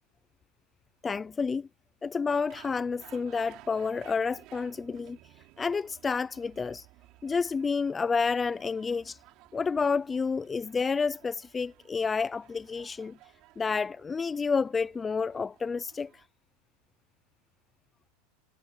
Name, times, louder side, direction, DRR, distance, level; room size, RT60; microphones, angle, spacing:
voice 1, 1.0-1.7 2.0-5.2 5.6-6.9 7.2-9.2 9.5-13.2 13.6-16.2, left 5 dB, 20° left, 0.5 m, -30 dB
sound 1, 2.3-16.3, right 19 dB, 50° right, 4.8 m, -56 dB
supercardioid pair, 115°, 0 cm